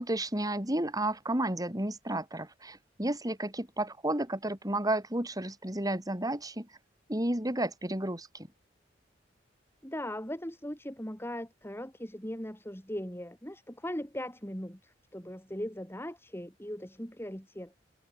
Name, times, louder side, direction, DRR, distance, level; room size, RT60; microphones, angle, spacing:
voice 1, 0.0-6.7 7.1-8.5, right 1 dB, 20° right, 4.2 m, -32 dB
voice 2, 9.8-17.8, left 1 dB, 15° left, 7.5 m, -39 dB
head